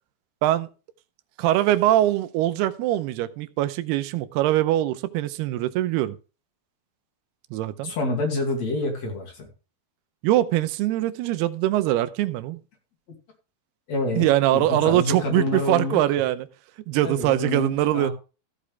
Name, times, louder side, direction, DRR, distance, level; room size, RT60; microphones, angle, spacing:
voice 1, 1.4-6.2 7.5-7.9 10.2-12.6 14.2-16.5 16.9-18.1, right 14 dB, 90° right, 2.8 m, -22 dB
voice 2, 7.8-9.5 13.9-16.0 17.0-18.1, left 2 dB, 45° left, 3.4 m, -27 dB
14.5 x 8.4 x 3.4 m
omnidirectional pair, 4.5 m